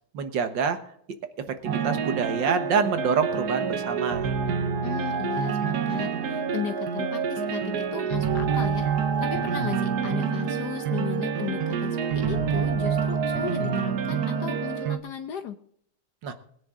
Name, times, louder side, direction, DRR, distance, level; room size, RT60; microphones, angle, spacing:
voice 1, 0.1-0.8 1.4-4.3 16.2-16.3, right 6 dB, 85° right, 9 dB, 2.1 m, -26 dB
sound 1, 1.6-15.0, right 6 dB, 65° right, 1.5 m, -27 dB
voice 2, 4.8-8.9 9.2-15.6, left 9 dB, 70° left, 8 dB, 1.4 m, -35 dB
21.5 x 9.6 x 3.8 m, 0.67 s
omnidirectional pair, 1.9 m